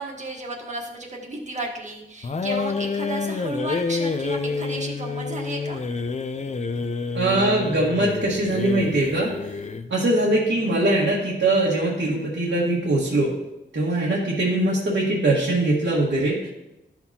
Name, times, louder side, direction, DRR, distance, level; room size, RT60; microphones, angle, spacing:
voice 1, 0.0-5.8, right 2 dB, 35° right, 0 dB, 1.3 m, -33 dB
sound 1, 2.2-9.9, left 4 dB, 35° left, 0.4 m, -28 dB
voice 2, 7.1-9.3 9.9-13.3 13.7-16.5, right 2 dB, 85° right, -7 dB, 1.7 m, -22 dB
12.5 x 5.8 x 2.8 m, 0.94 s
wide cardioid pair, 130°, 20 cm